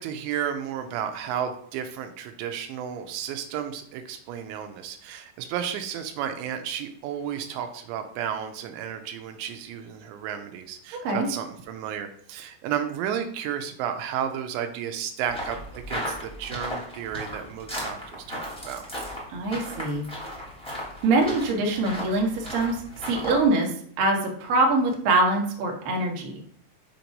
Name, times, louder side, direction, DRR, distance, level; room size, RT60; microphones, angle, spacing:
voice 1, 0.0-18.8, right 9 dB, 85° right, 6 dB, 2.8 m, -32 dB
sound 1, 15.3-23.4, equal, 5° left, 0.4 m, -36 dB
voice 2, 19.3-20.0 21.0-23.7 24.0-26.3, right 2 dB, 65° right, 0 dB, 2.4 m, -24 dB
7.1 x 3.0 x 5.2 m, 0.63 s
omnidirectional pair, 5.0 m